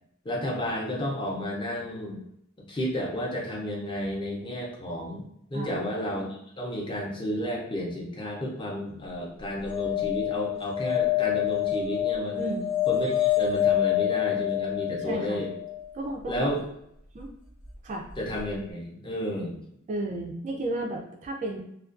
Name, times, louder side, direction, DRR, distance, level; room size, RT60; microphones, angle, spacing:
voice 1, 0.2-2.2 2.7-12.5 12.9-15.5 16.3-16.6 18.2-19.6, equal, 20° left, -2 dB, 0.5 m, -32 dB
voice 2, 5.5-5.9 12.4-12.7 15.0-15.4 15.9-16.5 17.1-17.3 17.8-18.0 19.9-21.6, right 2 dB, 35° right, 0 dB, 0.3 m, -33 dB
sound 1, 9.6-15.8 18.1-18.2 18.4-18.5, left 11 dB, 80° left, 0.8 m, -27 dB
2.4 x 2.2 x 2.4 m, 0.75 s
head